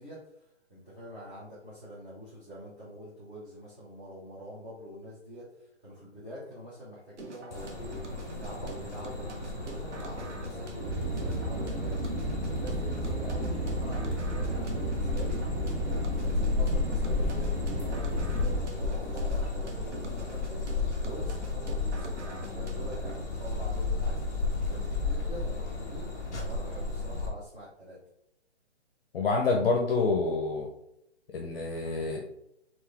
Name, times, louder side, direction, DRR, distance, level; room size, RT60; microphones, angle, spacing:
voice 1, 0.0-12.0 12.5-15.4 15.8-24.2 24.7-26.1 26.4-28.0, equal, 15° right, -11 dB, 1.0 m, -45 dB
sound 1, 7.2-23.2, right 2 dB, 80° right, 1.1 m, -44 dB
sound 2, 7.5-27.3, left 3 dB, 15° left, 0.6 m, -34 dB
sound 3, 10.8-18.6, equal, 55° right, 1.2 m, -32 dB
voice 2, 29.1-30.7 31.3-32.2, left 3 dB, 55° left, 1 dB, 0.7 m, -27 dB
4.8 x 3.0 x 3.4 m, 0.80 s
hypercardioid pair, 165°, 35 cm